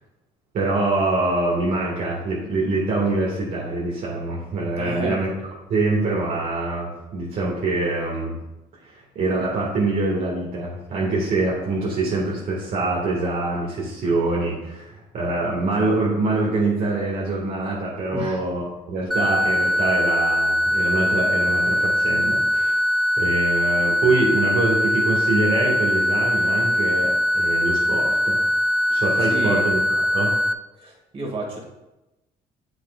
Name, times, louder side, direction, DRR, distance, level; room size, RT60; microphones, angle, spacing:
voice 1, 0.5-5.3 5.7-8.4 8.8-22.7 23.2-28.4 28.9-30.4, right 2 dB, 60° right, -5 dB, 1.9 m, -24 dB
voice 2, 4.8-5.2 18.1-18.4 29.3-29.6 30.8-31.6, right 2 dB, 35° right, -1 dB, 2.2 m, -30 dB
sound 1, 19.1-30.5, left 1 dB, ahead, 0.3 m, -21 dB
8.6 x 7.9 x 2.5 m, 0.99 s
cardioid pair, 110°, 17 cm